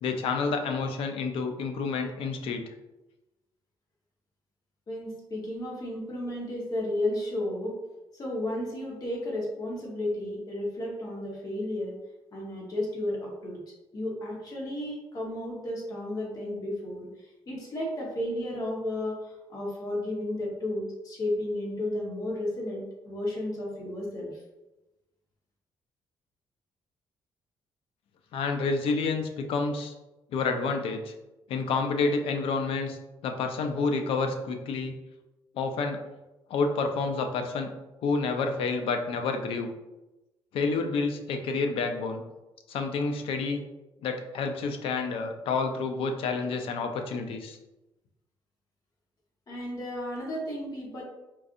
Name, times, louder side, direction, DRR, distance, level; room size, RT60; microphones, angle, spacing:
voice 1, 0.0-2.7 28.3-29.9 30.3-31.1 31.5-33.0 33.2-34.9 35.5-36.0 36.5-37.7 38.0-39.7 40.5-42.2 42.7-43.6 44.0-47.6, left 4 dB, 75° left, 5 dB, 0.5 m, -29 dB
voice 2, 4.9-7.8 8.1-12.0 12.3-13.6 13.9-24.3 49.5-51.0, left 1 dB, 40° left, -2 dB, 1.3 m, -33 dB
4.5 x 2.5 x 2.6 m, 1.0 s
cardioid pair, 90°, 9 cm